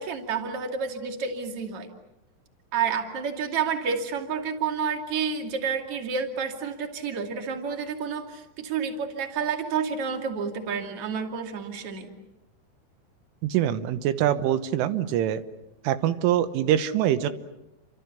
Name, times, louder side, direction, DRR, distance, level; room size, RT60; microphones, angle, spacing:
voice 1, 0.0-1.9 2.7-12.1, right 6 dB, 35° right, 4 dB, 2.9 m, -30 dB
voice 2, 13.4-15.4 15.9-17.3, right 11 dB, 85° right, 11 dB, 3.6 m, -24 dB
30.0 x 26.0 x 7.0 m, 0.93 s
omnidirectional pair, 5.5 m